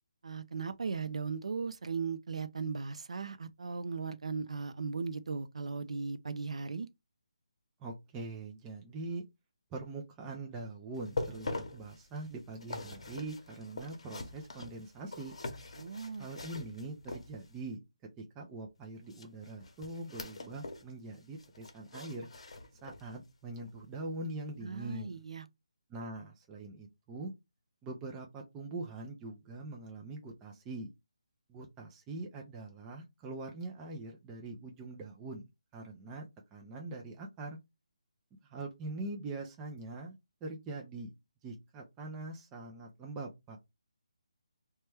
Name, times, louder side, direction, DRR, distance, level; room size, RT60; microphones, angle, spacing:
voice 1, 0.2-6.9 15.8-16.3 24.6-25.4, right 5 dB, 70° right, 0.4 m, -37 dB
voice 2, 7.8-9.2 9.7-15.3 16.2-17.8 18.2-22.3 22.8-25.2 25.9-27.3 27.8-30.9 31.5-35.4 35.7-37.6 38.4-40.1 40.4-41.1 41.4-43.6, right 2 dB, 10° right, 0.4 m, -43 dB
sound 1, 10.9-17.7 19.1-20.9 21.2-23.2 23.6-23.7 24.3-24.4, left 2 dB, 60° left, 0.8 m, -43 dB
2.9 x 2.2 x 3.3 m
hypercardioid pair, 170°, 3 cm